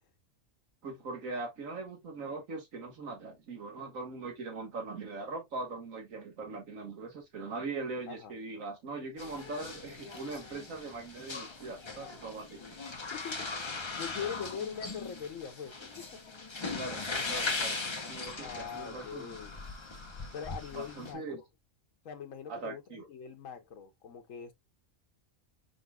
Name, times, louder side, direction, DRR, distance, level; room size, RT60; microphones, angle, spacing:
voice 1, 0.8-12.8 16.7-19.4 20.7-21.4 22.5-23.1, right 3 dB, 80° right, 1.8 m, -41 dB
sound 1, 9.2-21.1, left 3 dB, 25° left, 0.7 m, -39 dB
voice 2, 13.1-16.2 18.4-19.6 20.3-21.2 22.0-24.5, left 7 dB, 80° left, 1.2 m, -42 dB
5.3 x 3.9 x 2.2 m
omnidirectional pair, 1.4 m